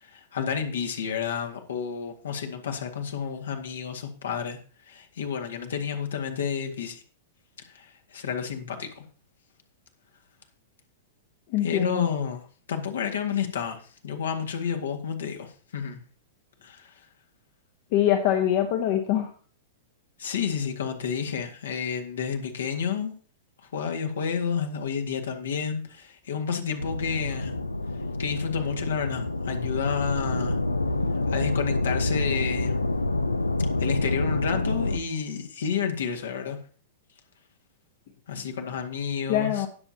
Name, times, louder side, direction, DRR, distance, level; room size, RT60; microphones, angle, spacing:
voice 1, 0.0-4.6 4.9-7.0 7.7-9.0 11.6-12.4 12.7-16.0 16.6-16.9 20.2-23.1 23.7-27.5 28.2-30.6 31.3-32.8 33.8-36.6 38.3-39.6, left 7 dB, 65° left, 4 dB, 2.0 m, -30 dB
voice 2, 11.5-12.1 17.9-19.3 39.3-39.7, left 11 dB, 50° left, 6 dB, 1.3 m, -23 dB
sound 1, 26.8-35.0, left 2 dB, 85° left, 0.6 m, -27 dB
19.0 x 7.3 x 2.9 m, 0.42 s
figure-of-eight pair, 100°, 0 cm